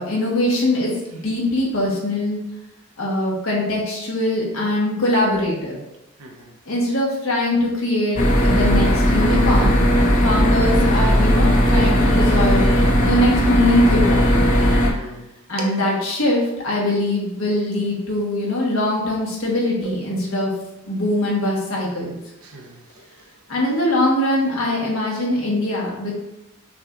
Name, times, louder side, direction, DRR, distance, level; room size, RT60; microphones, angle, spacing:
voice 1, 0.0-2.4 3.0-5.8 6.7-9.8 10.1-12.6 13.0-14.5 15.5-20.5 20.9-22.2 23.5-26.1, left 1 dB, 65° left, -3 dB, 1.4 m, -22 dB
voice 2, 6.2-6.5 14.9-15.3 15.6-15.7 19.8-20.2 22.4-23.3, right 3 dB, 70° right, 0 dB, 0.9 m, -38 dB
sound 1, 8.2-14.9, equal, 35° left, 0.7 m, -16 dB
5.8 x 2.5 x 3.0 m, 0.90 s
head